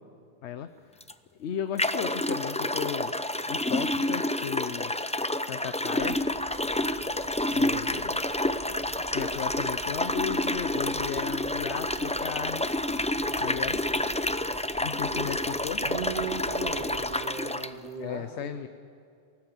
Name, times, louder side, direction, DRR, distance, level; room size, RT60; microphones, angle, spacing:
voice 1, 0.4-1.0 1.4-3.1 3.5-4.9 5.4-6.2 7.5-8.2 9.1-13.0 13.4-13.8 14.8-15.8 18.0-18.7, left 9 dB, 75° left, 11 dB, 1.0 m, -35 dB
sound 1, 1.0-1.1 1.8-17.7, left 1 dB, 10° left, 0.4 m, -29 dB
sound 2, 6.0-17.2, right 1 dB, 15° right, 1.3 m, -49 dB
voice 2, 15.8-18.7, right 5 dB, 85° right, -1 dB, 2.6 m, -37 dB
24.0 x 18.0 x 7.3 m, 2.4 s
omnidirectional pair, 1.2 m